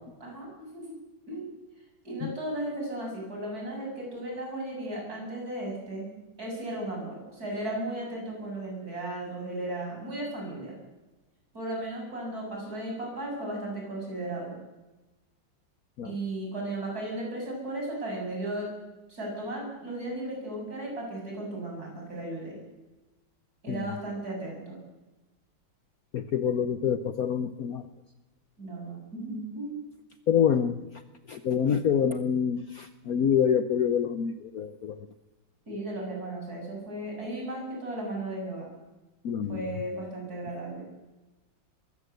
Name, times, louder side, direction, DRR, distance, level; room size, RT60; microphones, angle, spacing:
voice 1, 0.2-1.0 1.3-1.5 2.0-6.1 6.4-10.8 11.5-14.5 16.0-18.7 19.1-22.6 23.6-24.8 28.6-29.8 35.7-38.7 39.5-40.9, right 1 dB, 45° right, -1 dB, 7.8 m, -35 dB
voice 2, 26.1-27.9 30.3-30.8 31.3-35.1 39.2-39.7, left 8 dB, 60° left, 10 dB, 1.1 m, -26 dB
22.0 x 16.0 x 8.1 m, 1.1 s
omnidirectional pair, 2.2 m